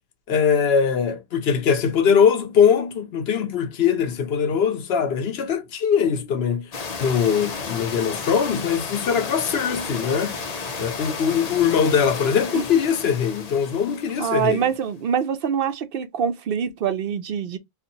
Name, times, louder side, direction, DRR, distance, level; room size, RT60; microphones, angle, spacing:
voice 1, 0.3-6.7 7.0-10.4 10.8-14.6, left 7 dB, 75° left, 0.9 m, -21 dB
sound 1, 6.7-14.7, left 4 dB, 45° left, 0.7 m, -33 dB
voice 2, 14.2-17.6, right 7 dB, 65° right, 0.7 m, -25 dB
2.6 x 2.5 x 3.9 m
omnidirectional pair, 1.0 m